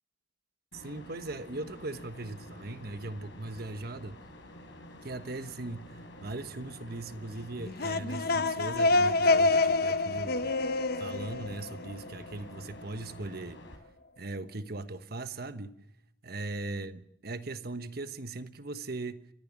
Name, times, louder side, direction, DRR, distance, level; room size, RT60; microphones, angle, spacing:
sound 1, 0.7-13.8, equal, 80° left, 4.6 m, -49 dB
voice 1, 0.7-4.2 5.0-10.4 11.0-13.6 14.2-15.8 16.2-19.2, right 2 dB, 55° right, 1.2 m, -39 dB
sound 2, 7.6-12.3, left 3 dB, 55° left, 0.9 m, -27 dB
30.0 x 14.5 x 7.3 m
head